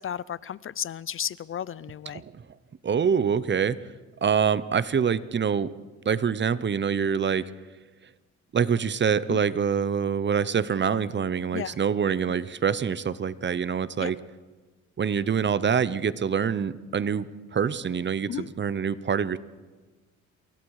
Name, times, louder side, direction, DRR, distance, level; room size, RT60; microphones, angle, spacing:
voice 1, 0.0-2.2 9.3-9.4 11.5-11.8 14.0-14.1 18.3-18.5, left 9 dB, 45° left, 20 dB, 0.6 m, -33 dB
voice 2, 2.8-3.8 4.2-5.7 6.0-7.5 8.5-14.2 15.0-19.4, right 7 dB, 35° right, 17 dB, 0.9 m, -25 dB
27.5 x 22.5 x 4.9 m, 1.3 s
cardioid pair, 90°, 30 cm